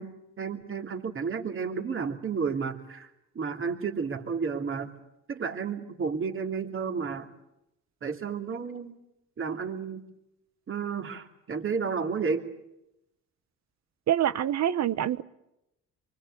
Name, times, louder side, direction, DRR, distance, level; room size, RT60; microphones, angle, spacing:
voice 1, 0.0-4.9 5.3-7.3 8.0-9.0 9.4-10.1 10.7-12.4, right 5 dB, 45° right, 4 dB, 3.0 m, -32 dB
voice 2, 14.1-15.2, right 11 dB, 65° right, 15 dB, 1.1 m, -25 dB
25.5 x 24.5 x 8.3 m, 0.87 s
cardioid pair, 90°, 30 cm